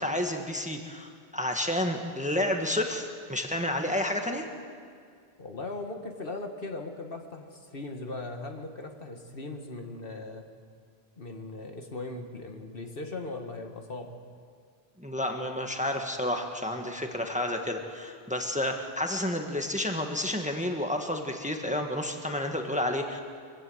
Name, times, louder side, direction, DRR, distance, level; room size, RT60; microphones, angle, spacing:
voice 1, 0.0-4.5 15.0-23.2, left 1 dB, 5° right, 3 dB, 1.5 m, -30 dB
voice 2, 5.4-10.4 11.2-14.1, left 2 dB, 60° left, 4 dB, 1.7 m, -39 dB
23.5 x 15.5 x 7.9 m, 2.2 s
omnidirectional pair, 1.1 m